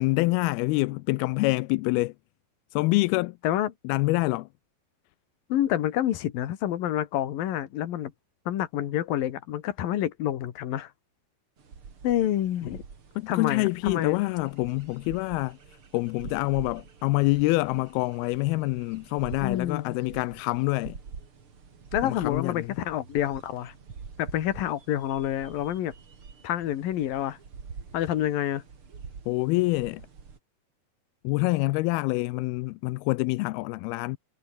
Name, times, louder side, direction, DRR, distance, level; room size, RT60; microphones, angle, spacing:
voice 1, 0.0-2.1 2.7-3.3 3.8-4.5 13.2-15.6 15.9-21.0 22.0-22.7 29.3-30.0 31.2-34.2, left 22 dB, 85° left, 2.5 m, -26 dB
voice 2, 5.5-8.1 8.5-10.9 12.0-12.8 13.3-14.2 19.4-20.1 21.9-23.7 24.2-25.9 26.4-27.4 27.9-28.6, left 12 dB, 70° left, 3.3 m, -28 dB
sound 1, 11.6-30.4, right 5 dB, 35° right, 3.4 m, -46 dB
omnidirectional pair, 4.4 m